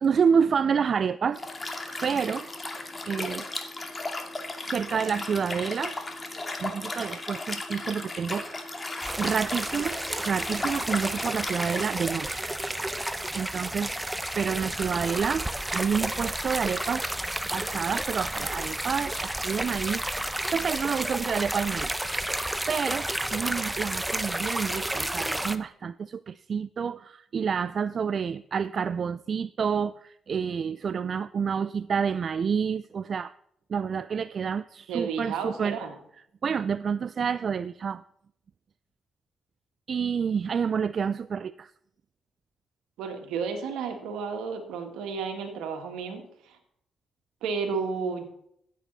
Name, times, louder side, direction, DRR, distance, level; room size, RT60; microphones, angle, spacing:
voice 1, 0.0-1.4 2.0-2.5 3.1-3.5 4.6-6.0 6.6-8.8 9.2-12.4 13.3-13.9 14.4-17.1 17.5-21.9 22.7-33.3 33.7-35.8 36.4-38.0 39.9-41.7, right 6 dB, 55° right, 16 dB, 0.3 m, -28 dB
Liquid, 1.3-11.9, left 2 dB, 30° left, 2.3 m, -35 dB
sound 1, 9.0-25.6, right 1 dB, 10° right, 0.9 m, -31 dB
voice 2, 34.9-35.9 43.0-46.2 47.4-48.3, right 5 dB, 85° right, 4 dB, 1.8 m, -32 dB
14.5 x 8.2 x 4.0 m, 0.72 s
supercardioid pair, 50°, 0 cm